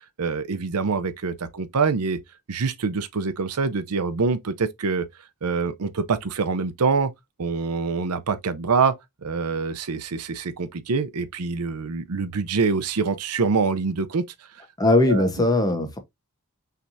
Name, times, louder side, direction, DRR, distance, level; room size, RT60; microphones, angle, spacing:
voice 1, 0.2-2.2 2.5-5.1 5.4-7.1 7.4-14.3 14.8-15.3, right 4 dB, 85° right, 0.6 m, -25 dB
voice 2, 14.8-16.0, left 2 dB, 15° left, 1.0 m, -20 dB
5.8 x 3.4 x 2.6 m
head